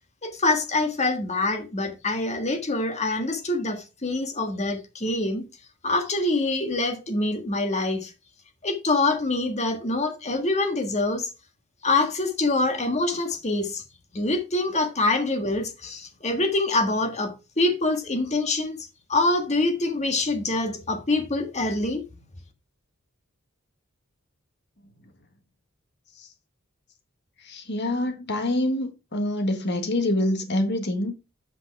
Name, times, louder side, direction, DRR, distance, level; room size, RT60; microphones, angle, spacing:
voice 1, 0.2-5.5 5.8-8.1 8.6-11.3 11.8-13.8 14.1-22.0, left 2 dB, 35° left, 1.7 m, -25 dB
voice 2, 27.4-31.2, left 1 dB, 55° left, 1.6 m, -26 dB
8.3 x 5.7 x 4.7 m
head